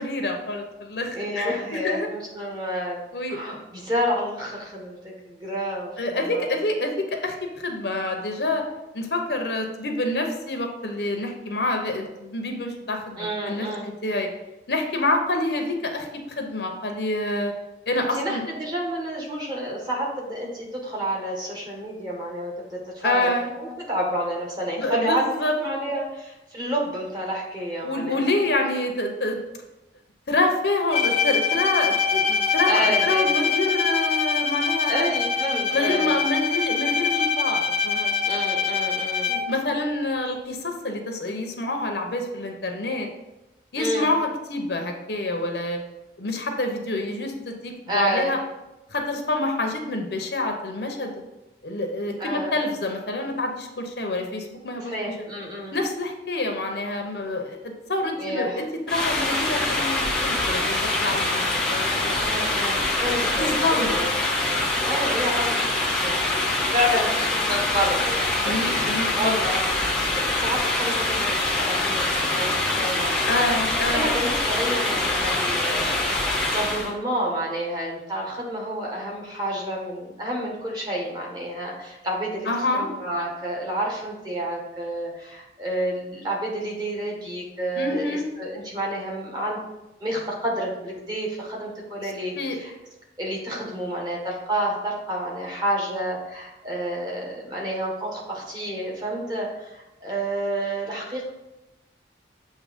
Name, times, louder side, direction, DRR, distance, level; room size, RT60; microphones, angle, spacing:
voice 1, 0.0-2.1 3.1-3.4 6.0-8.6 8.9-14.3 14.7-16.1 16.4-17.5 17.9-18.5 23.0-23.5 24.8-25.6 27.8-29.4 30.3-35.1 35.7-38.1 39.3-43.1 43.7-45.8 46.2-48.4 48.9-51.2 51.6-55.1 55.7-61.4 61.7-62.2 63.0-63.9 68.4-69.4 73.3-74.1 82.5-82.9 87.8-88.2 92.4-92.6, left 2 dB, 70° left, 3 dB, 0.9 m, -27 dB
voice 2, 1.1-6.5 13.2-13.8 18.1-28.2 32.6-33.3 34.9-36.2 38.2-39.4 43.7-44.1 47.9-48.3 52.2-52.5 54.8-55.8 58.2-58.6 62.1-64.1 64.8-66.4 66.7-68.3 68.7-69.6 70.0-73.6 73.9-89.6 90.0-92.7 93.2-101.3, equal, 25° right, -3 dB, 1.5 m, -29 dB
Bowed string instrument, 30.9-39.7, left 6 dB, 35° left, 0.5 m, -24 dB
sound 1, 58.9-76.9, left 2 dB, 5° left, 0.9 m, -24 dB
7.4 x 2.9 x 5.1 m, 0.96 s
head